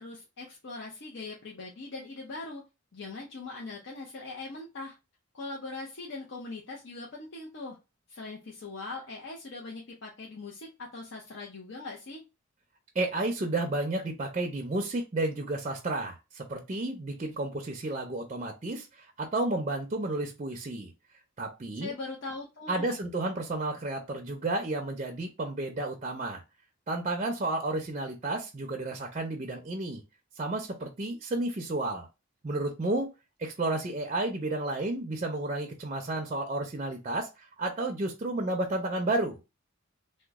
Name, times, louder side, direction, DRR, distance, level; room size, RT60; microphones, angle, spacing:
voice 1, 0.0-2.6 2.9-4.9 5.3-7.8 8.1-12.2 21.8-23.0, left 3 dB, 60° left, -2 dB, 0.7 m, -41 dB
voice 2, 12.9-20.9 21.4-21.9 22.7-26.4 26.9-30.0 30.4-32.1 32.4-33.1 33.4-39.4, right 2 dB, 30° right, 2 dB, 0.5 m, -32 dB
3.0 x 2.1 x 3.4 m, 0.26 s
head